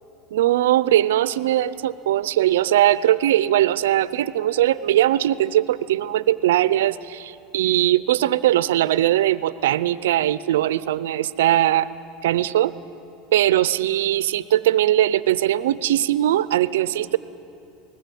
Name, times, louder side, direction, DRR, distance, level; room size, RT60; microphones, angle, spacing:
voice 1, 0.3-11.9 12.2-12.7 13.3-17.2, right 13 dB, 90° right, 17 dB, 0.6 m, -20 dB
20.5 x 20.0 x 8.4 m, 2.8 s
supercardioid pair, 115°, 0 cm